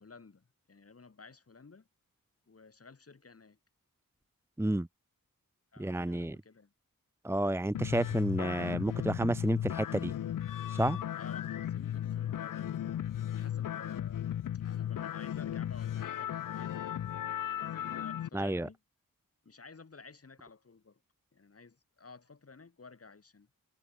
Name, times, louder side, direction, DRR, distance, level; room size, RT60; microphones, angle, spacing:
voice 1, 0.0-1.9 2.5-3.6 5.7-6.7 11.2-13.0 13.3-14.4 14.6-17.1 17.4-18.8 19.4-21.0 21.3-23.5, left 4 dB, 40° left, 8.0 m, -53 dB
voice 2, 5.8-6.4 7.2-10.1 10.7-11.0 18.3-18.7, right 1 dB, 5° right, 0.8 m, -30 dB
sound 1, 7.7-18.3, left 10 dB, 65° left, 0.5 m, -36 dB
wide cardioid pair, 165°, 35 cm